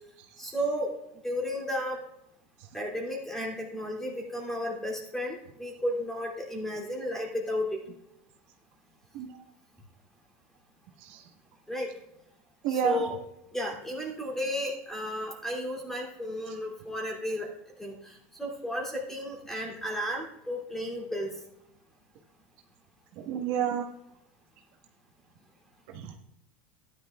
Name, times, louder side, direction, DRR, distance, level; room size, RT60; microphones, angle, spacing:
voice 1, 0.4-0.9 1.2-2.0 2.7-7.8 11.7-11.9 12.7-13.2 13.5-17.5 17.8-17.9 18.4-21.3, equal, 5° left, -1 dB, 2.9 m, -33 dB
voice 2, 12.6-13.0 23.3-23.8 25.9-26.1, right 8 dB, 60° right, 2 dB, 1.4 m, -29 dB
14.0 x 10.5 x 2.4 m, 0.81 s
supercardioid pair, 140°, 7 cm